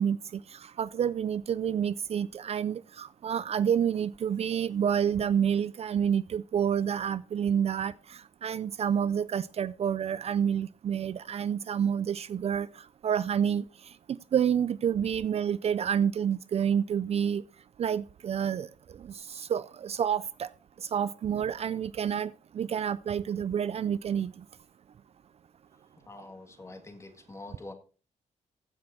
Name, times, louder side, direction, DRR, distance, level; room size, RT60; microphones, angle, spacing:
voice 1, 0.0-17.4 17.8-20.5 20.8-24.4, right 8 dB, 50° right, 0.4 m, -29 dB
voice 2, 26.1-27.7, left 2 dB, 20° left, 1.8 m, -45 dB
15.0 x 6.3 x 4.2 m
wide cardioid pair, 140°, 13 cm